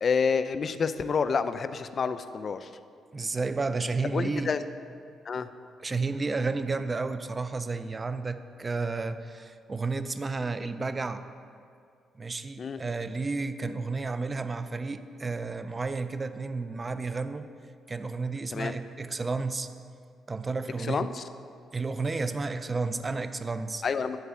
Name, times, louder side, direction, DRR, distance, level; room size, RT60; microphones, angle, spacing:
voice 1, 0.0-2.7 4.1-4.6 5.3-5.5 12.6-12.8 18.5-18.8 20.8-21.2 23.8-24.2, left 5 dB, 45° left, 11 dB, 0.4 m, -28 dB
voice 2, 3.1-4.6 5.8-11.3 12.2-17.5 17.9-19.7 20.3-21.1 21.7-23.8, right 3 dB, 25° right, 11 dB, 0.5 m, -31 dB
10.5 x 4.1 x 7.3 m, 2.3 s
cardioid pair, 90°, 0 cm